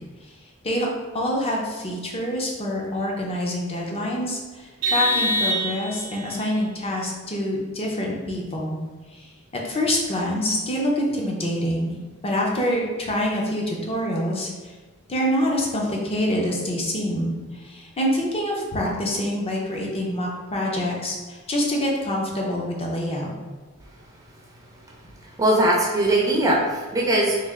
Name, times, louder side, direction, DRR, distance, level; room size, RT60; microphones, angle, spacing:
voice 1, 1.1-8.8 9.1-9.3 9.5-12.0 12.2-14.5 15.1-23.3, equal, 30° left, -2 dB, 0.6 m, -26 dB
Vehicle horn car horn honking, 4.8-6.2, equal, 85° right, 0.6 m, -24 dB
voice 2, 25.4-27.5, right 1 dB, 15° right, -3 dB, 0.5 m, -20 dB
3.2 x 2.5 x 3.6 m, 1.3 s
head